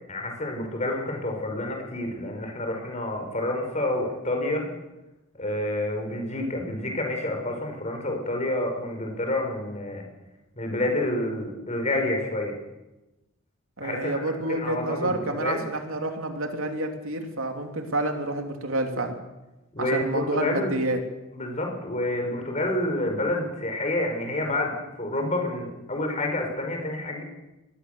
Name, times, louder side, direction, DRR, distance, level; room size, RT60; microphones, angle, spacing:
voice 1, 0.1-4.7 5.4-10.0 10.6-12.5 13.8-15.6 19.7-20.7 21.3-27.2, left 1 dB, 30° left, 3 dB, 5.4 m, -28 dB
voice 2, 13.8-19.2 19.8-21.0, right 1 dB, 70° right, 4 dB, 3.0 m, -29 dB
24.5 x 20.0 x 6.9 m, 1.0 s
head